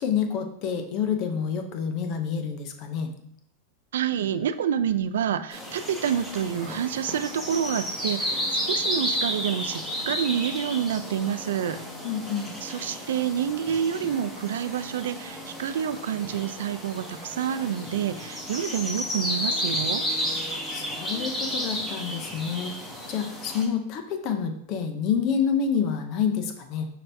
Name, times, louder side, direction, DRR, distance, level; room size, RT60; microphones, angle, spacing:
voice 1, 0.0-3.1 12.0-12.5 20.7-22.7 23.1-26.9, left 7 dB, 45° left, 6 dB, 0.6 m, -28 dB
voice 2, 3.9-11.8 12.6-20.0, right 9 dB, 85° right, 11 dB, 0.3 m, -28 dB
sound 1, 5.5-23.6, equal, 5° left, 1.0 m, -32 dB
5.7 x 2.6 x 3.3 m, 0.75 s
supercardioid pair, 130°, 0 cm